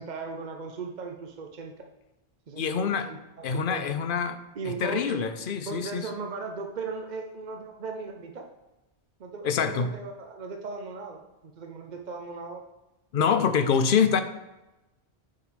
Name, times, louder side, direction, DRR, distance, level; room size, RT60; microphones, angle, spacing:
voice 1, 0.0-1.7 2.5-3.8 4.5-5.3 5.7-8.5 9.2-12.6, right 4 dB, 50° right, 3 dB, 0.8 m, -37 dB
voice 2, 2.6-3.1 3.4-4.4 4.7-6.1 9.4-9.9 13.1-14.2, left 6 dB, 60° left, 10 dB, 0.8 m, -25 dB
8.4 x 4.7 x 4.9 m, 0.98 s
omnidirectional pair, 1.1 m